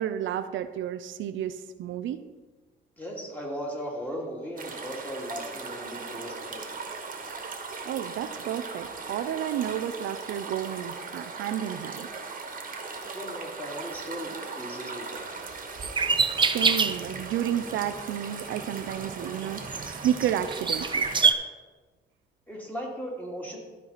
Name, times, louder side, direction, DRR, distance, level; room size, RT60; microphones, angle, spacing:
voice 1, 0.0-2.2 7.8-12.1 16.4-19.6 20.0-21.1, right 10 dB, 75° right, 10 dB, 0.5 m, -31 dB
voice 2, 3.0-6.6 13.1-15.5 22.5-23.6, equal, 10° left, -2 dB, 2.4 m, -37 dB
sound 1, 4.6-21.3, right 4 dB, 40° right, 1.4 m, -39 dB
sound 2, 15.8-17.2 17.7-18.0 18.6-21.3, right 5 dB, 25° right, 0.6 m, -26 dB
13.5 x 4.6 x 4.1 m, 1.3 s
cardioid pair, 90°, 20 cm